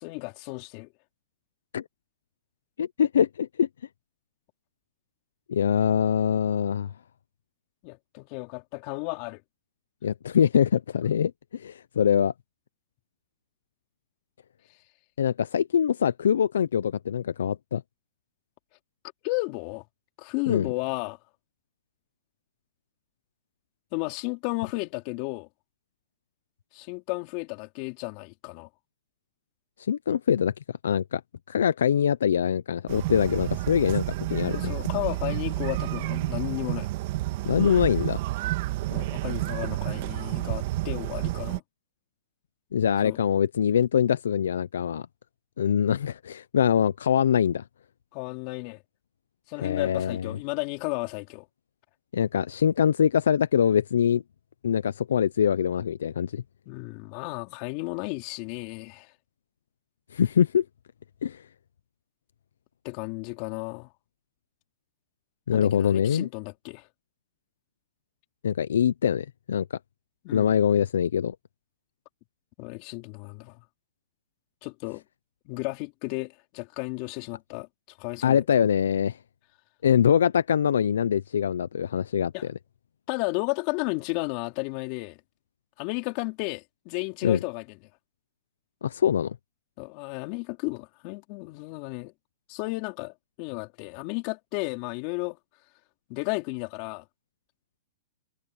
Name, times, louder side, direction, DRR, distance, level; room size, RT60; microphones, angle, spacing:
voice 1, 0.0-0.9 7.8-9.4 19.2-19.8 20.2-21.2 23.9-25.5 26.7-28.7 34.5-36.9 38.9-41.6 43.0-43.2 48.1-48.8 49.5-51.5 56.7-59.1 62.8-63.9 65.5-66.9 70.2-70.5 72.6-73.6 74.6-75.0 75.4-77.7 78.0-78.4 82.3-82.5 83.1-85.2 85.8-87.8 89.8-92.1 92.5-95.4 96.1-97.0, left 28 dB, 45° left, 4.5 m, -33 dB
voice 2, 2.8-3.7 5.5-6.9 10.0-12.3 15.2-17.8 20.5-20.7 29.9-30.5 30.8-31.2 31.5-34.0 34.3-34.7 37.4-38.2 42.7-45.1 45.6-47.6 49.6-50.3 52.1-54.2 54.6-56.4 60.1-60.6 61.2-61.4 65.5-66.3 68.4-69.7 70.3-71.4 78.2-79.2 79.8-82.5 87.2-87.4 88.8-89.4, left 8 dB, 90° left, 0.6 m, -23 dB
sound 1, 32.9-41.6, right 17 dB, 55° right, 1.7 m, -30 dB
hypercardioid pair, 140°, 0 cm